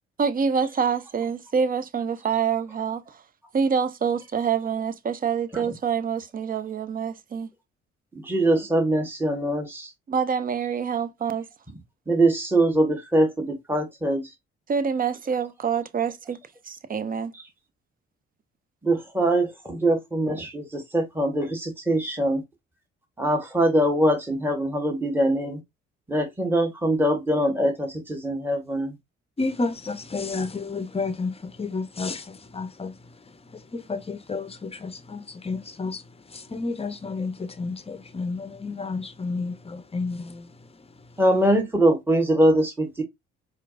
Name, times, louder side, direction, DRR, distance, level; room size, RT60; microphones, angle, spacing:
voice 1, 0.2-3.0 3.5-7.5 10.1-11.5 14.7-16.4 16.7-17.3, right 6 dB, 25° right, 0.5 m, -26 dB
voice 2, 8.2-9.9 12.1-14.3 18.8-22.4 23.2-25.6 26.1-28.9 41.2-43.0, right 1 dB, 5° right, 1.3 m, -23 dB
voice 3, 29.4-40.5 41.0-41.1, left 3 dB, 20° left, 0.7 m, -31 dB
4.3 x 2.5 x 2.5 m
hypercardioid pair, 45°, 32 cm